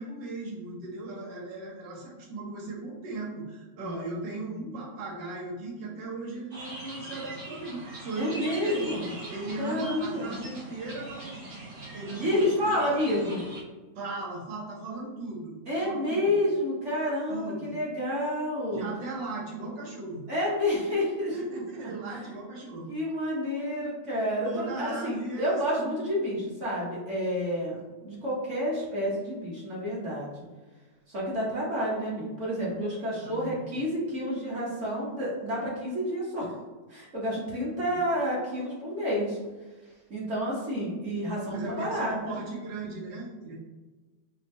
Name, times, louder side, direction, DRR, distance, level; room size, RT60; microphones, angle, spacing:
voice 1, 0.0-8.9 9.3-11.4 11.9-12.7 13.9-16.2 17.3-17.8 18.7-20.3 21.3-22.9 24.4-25.9 33.2-33.6 37.9-38.0 41.5-43.6, right 2 dB, 85° right, -3 dB, 1.5 m, -37 dB
sound 1, 6.5-13.6, right 2 dB, 65° right, 0.5 m, -42 dB
voice 2, 8.1-9.1 9.6-10.3 12.2-13.4 15.7-18.9 20.3-21.6 22.9-30.3 31.1-36.5 36.9-39.4 40.1-42.1, equal, 50° right, -6 dB, 1.2 m, -29 dB
5.5 x 2.3 x 2.6 m, 1.2 s
omnidirectional pair, 1.9 m